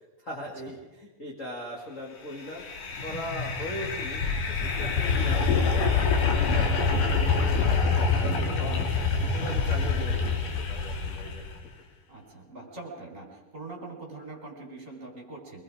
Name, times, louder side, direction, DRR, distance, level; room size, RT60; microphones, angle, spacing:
voice 1, 0.2-2.6 3.0-6.0 6.3-9.1 9.3-10.3 10.6-11.5, left 1 dB, 25° left, -2 dB, 2.1 m, -39 dB
sound 1, 2.4-11.6, left 4 dB, 70° left, 3.5 m, -26 dB
voice 2, 12.1-15.6, right 2 dB, 20° right, 0 dB, 4.6 m, -43 dB
25.0 x 21.0 x 4.9 m, 1.1 s
omnidirectional pair, 3.9 m